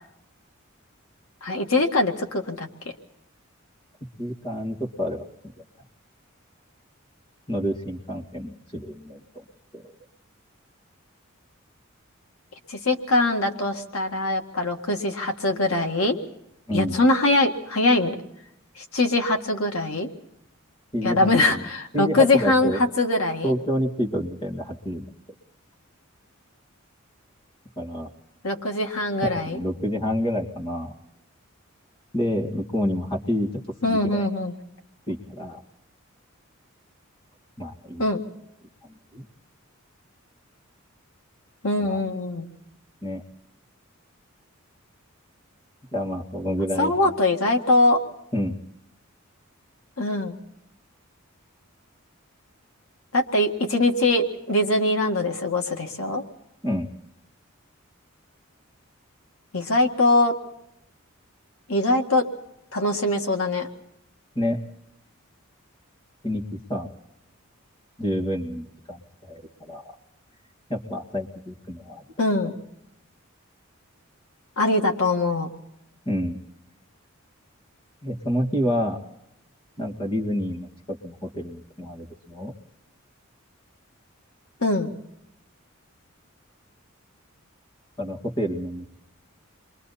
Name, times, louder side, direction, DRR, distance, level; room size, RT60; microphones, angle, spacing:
voice 1, 1.4-2.7 12.7-16.2 16.7-18.2 18.8-20.1 21.0-23.5 28.4-29.6 33.8-34.6 38.0-38.2 41.6-42.5 46.8-48.0 50.0-50.4 53.1-56.2 59.5-60.3 61.7-62.3 62.7-63.7 72.2-72.5 74.6-75.5 84.6-84.9, left 2 dB, 85° left, 4 dB, 2.0 m, -22 dB
voice 2, 4.2-5.2 7.5-9.2 9.7-9.8 16.7-17.0 20.9-21.6 21.9-22.8 23.4-25.1 27.8-28.1 29.2-30.9 32.1-33.5 33.8-34.3 35.1-35.6 37.6-38.0 39.1-39.2 41.9-42.0 43.0-43.2 45.9-47.1 48.3-48.6 56.6-56.9 64.4-64.6 66.2-66.4 66.7-66.9 68.0-69.9 70.7-72.0 76.1-76.4 78.0-79.0 79.8-82.5 88.0-88.8, equal, 25° left, 2 dB, 2.3 m, -28 dB
29.0 x 23.0 x 4.2 m, 0.79 s
head